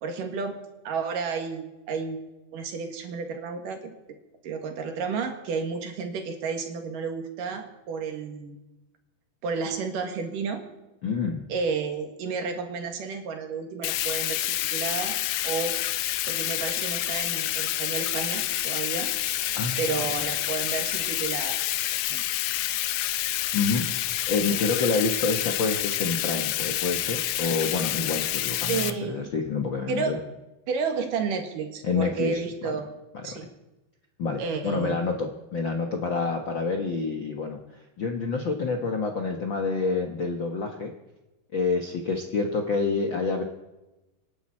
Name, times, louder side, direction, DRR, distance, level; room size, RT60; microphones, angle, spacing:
voice 1, 0.0-0.6 0.8-2.2 2.5-4.0 4.4-8.6 9.4-10.6 11.5-15.2 15.4-15.7 16.3-19.1 19.8-21.6 22.1-22.2 28.7-29.3 29.9-30.2 30.7-32.9 33.2-33.5 34.4-35.0, right 5 dB, 70° right, 5 dB, 3.3 m, -31 dB
voice 2, 11.0-11.4 19.5-20.3 23.5-24.0 24.3-30.2 31.8-32.7 33.3-33.5 34.2-40.9 41.5-43.4, left 4 dB, 60° left, 3 dB, 1.3 m, -28 dB
Bathtub (filling or washing), 13.8-28.9, left 14 dB, 75° left, 2.1 m, -28 dB
27.0 x 11.0 x 4.3 m, 1.0 s
omnidirectional pair, 4.1 m